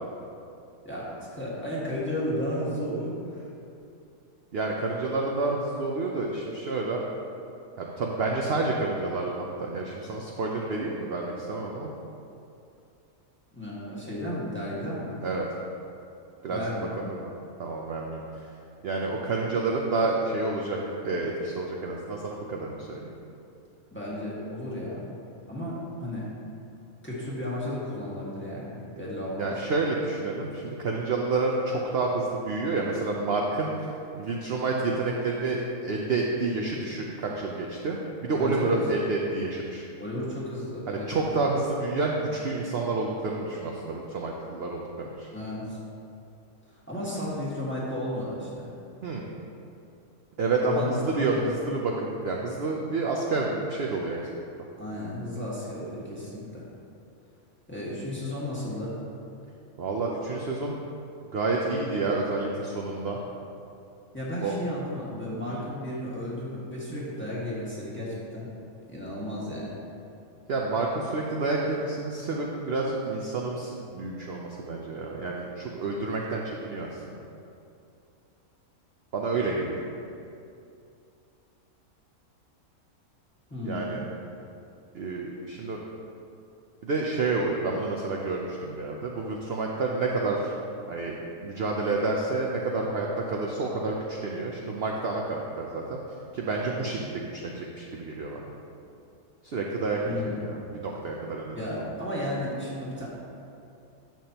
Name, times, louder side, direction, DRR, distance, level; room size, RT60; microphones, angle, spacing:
voice 1, 0.8-3.5 13.5-15.2 16.5-16.9 23.9-25.1 25.5-26.3 27.0-29.5 38.3-38.8 40.0-41.3 45.3-45.8 46.7-48.7 50.6-50.9 51.2-51.6 54.8-56.7 57.7-59.0 64.1-68.5 68.9-69.7 83.5-84.0 100.0-100.4 101.5-103.1, left 1 dB, 10° left, -8 dB, 1.7 m, -33 dB
voice 2, 4.5-7.0 7.8-11.9 15.2-15.4 16.4-16.6 17.0-17.3 17.6-18.4 18.8-20.8 21.0-23.1 29.4-39.9 40.9-45.3 49.0-49.2 50.4-54.2 59.8-60.8 61.3-63.2 64.4-64.5 65.5-65.6 70.5-77.2 79.1-79.8 83.6-84.0 84.9-85.8 86.8-90.5 90.9-96.0 96.3-98.4 99.4-101.7, right 3 dB, 55° right, -1 dB, 0.8 m, -29 dB
10.5 x 7.2 x 2.9 m, 2.6 s
omnidirectional pair, 1.5 m